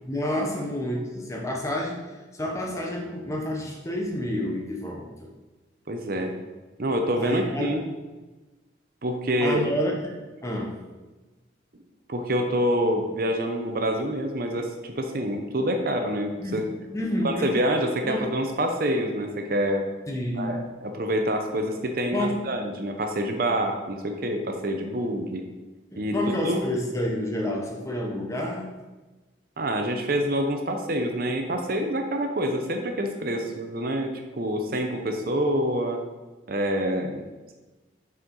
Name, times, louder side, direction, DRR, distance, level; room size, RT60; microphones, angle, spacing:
voice 1, 0.0-5.3 7.2-7.7 9.4-10.8 16.4-16.6 16.9-17.6 18.0-18.3 20.1-20.6 22.1-22.4 25.9-28.7, left 1 dB, 15° left, 0 dB, 0.7 m, -29 dB
voice 2, 5.9-6.3 6.8-7.8 9.0-9.6 12.1-16.6 17.2-19.8 20.4-25.4 26.0-26.1 26.4-26.7 29.6-34.1 34.4-36.0 36.5-37.2, equal, 50° right, 4 dB, 0.6 m, -26 dB
6.4 x 4.5 x 3.8 m, 1.2 s
head